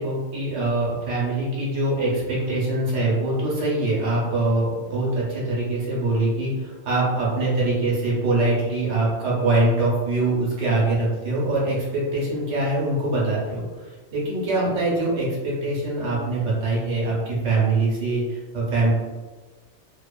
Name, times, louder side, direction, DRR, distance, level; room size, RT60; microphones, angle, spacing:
voice 1, 0.0-18.9, right 2 dB, 90° right, -5 dB, 1.1 m, -23 dB
2.8 x 2.1 x 2.3 m, 1.3 s
omnidirectional pair, 1.2 m